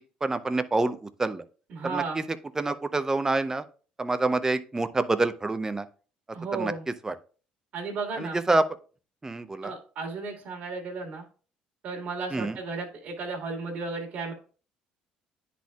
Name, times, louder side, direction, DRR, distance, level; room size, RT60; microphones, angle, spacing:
voice 1, 0.2-1.4 1.8-2.2 2.6-3.6 4.0-5.9 6.5-6.7 7.0-7.2 8.2-8.6 9.2-9.7 12.3-12.5, right 2 dB, 20° right, 11 dB, 0.6 m, -27 dB
voice 2, 1.7-2.2 6.3-6.8 7.7-8.4 9.6-11.2 11.8-14.3, right 4 dB, 55° right, 0 dB, 2.0 m, -34 dB
10.0 x 4.2 x 2.3 m, 0.38 s
supercardioid pair, 80°, 3 cm